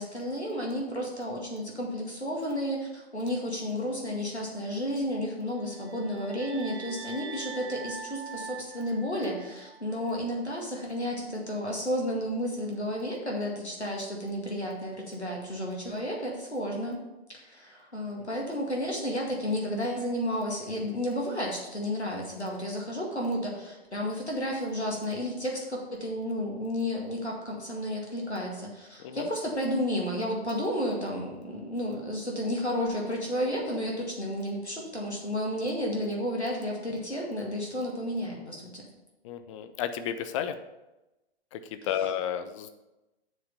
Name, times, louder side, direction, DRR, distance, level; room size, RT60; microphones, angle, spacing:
voice 1, 0.0-17.0 17.3-38.9 42.0-42.1, equal, 90° left, -2 dB, 2.1 m, -32 dB
sound 1, 5.6-9.9, right 5 dB, 70° right, 1.9 m, -43 dB
voice 2, 39.2-40.6 41.5-42.7, left 9 dB, 30° left, 10 dB, 0.6 m, -32 dB
7.9 x 6.3 x 5.5 m, 1.0 s
figure-of-eight pair, 110°, 32 cm